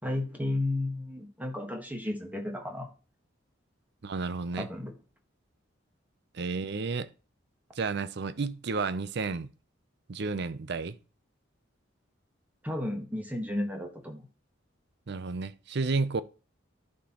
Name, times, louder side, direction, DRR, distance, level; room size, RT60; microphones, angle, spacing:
voice 1, 0.0-2.9 4.6-4.9 12.6-14.3, left 1 dB, 10° right, 1.4 m, -33 dB
voice 2, 4.0-4.7 6.3-7.1 7.8-9.5 10.1-10.9 15.1-16.2, right 4 dB, 60° right, 0.6 m, -31 dB
11.5 x 4.4 x 2.9 m
head